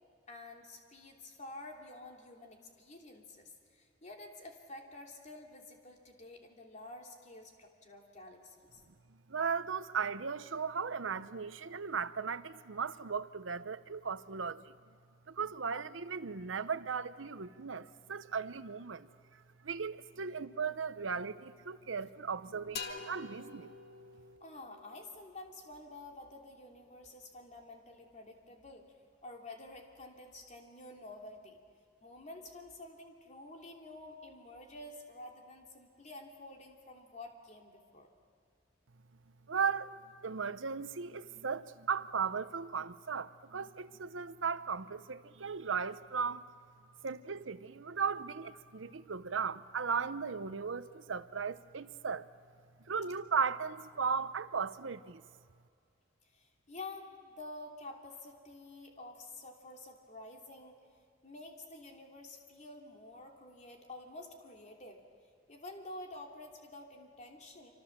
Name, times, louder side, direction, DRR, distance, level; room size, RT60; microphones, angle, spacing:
voice 1, 0.3-8.8 24.4-28.9 29.2-31.6 32.0-38.1 56.3-60.8 61.2-65.0 65.5-67.7, left 2 dB, 40° left, 3.0 m, -50 dB
voice 2, 9.3-14.7 15.3-19.1 19.6-23.7 39.5-39.9 40.2-46.4 47.0-52.3 52.9-55.2, right 6 dB, 85° right, 0.8 m, -36 dB
sound 1, 22.8-26.4, left 5 dB, 60° left, 1.9 m, -47 dB
26.5 x 26.0 x 7.3 m
head